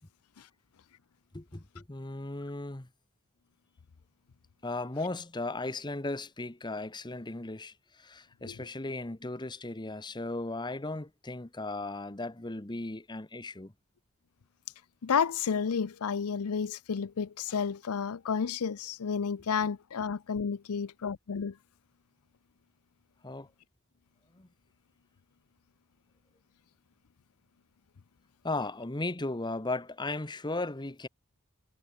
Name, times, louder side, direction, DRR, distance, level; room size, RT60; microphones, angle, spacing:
voice 1, 1.3-2.9 4.6-13.7 23.2-23.5 24.3-24.5 28.4-31.1, left 2 dB, 20° left, 1.0 m, -36 dB
voice 2, 15.0-21.5, left 6 dB, 85° left, 0.6 m, -31 dB
head